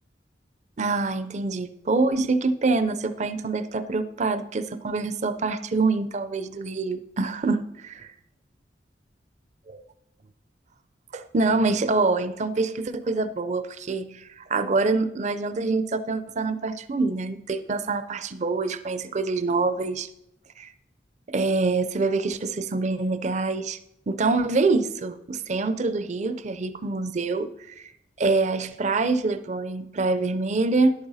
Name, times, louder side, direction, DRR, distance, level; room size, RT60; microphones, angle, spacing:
voice 1, 0.8-8.1 9.7-9.8 11.1-20.1 20.6-20.7 21.3-23.8 24.1-27.9 28.2-30.9, right 3 dB, 40° right, 12 dB, 0.5 m, -25 dB
11.0 x 8.7 x 4.1 m, 0.80 s
head